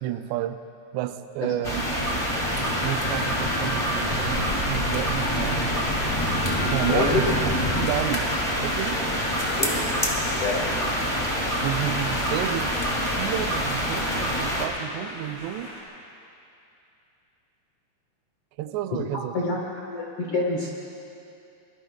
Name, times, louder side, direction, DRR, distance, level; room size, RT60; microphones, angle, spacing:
voice 1, 0.0-0.6 0.9-2.1 2.8-5.7 6.7-9.0 11.6-12.7 13.1-15.7 18.6-19.4, right 12 dB, 85° right, 10 dB, 2.7 m, -31 dB
sound 1, 1.6-14.7, equal, 50° left, 0.3 m, -26 dB
sound 2, 2.4-15.8, equal, 30° left, 3.1 m, -38 dB
voice 2, 6.9-7.3 9.5-9.7 10.4-10.7 19.3-19.6 19.9-20.7, left 3 dB, 65° left, -3 dB, 1.4 m, -26 dB
24.5 x 22.5 x 2.3 m, 2.7 s
omnidirectional pair, 4.8 m